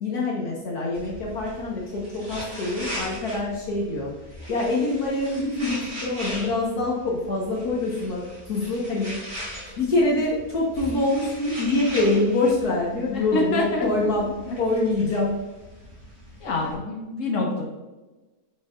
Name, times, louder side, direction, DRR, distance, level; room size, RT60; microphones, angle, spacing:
voice 1, 0.0-4.1 4.5-9.2 9.8-15.4, left 2 dB, 70° left, -3 dB, 1.8 m, -25 dB
sound 1, 0.9-16.7, equal, 45° right, 3.1 m, -39 dB
voice 2, 13.1-14.1 14.5-14.6 16.4-17.6, left 2 dB, 50° left, -2 dB, 1.8 m, -26 dB
9.5 x 6.4 x 2.6 m, 1.2 s
omnidirectional pair, 1.8 m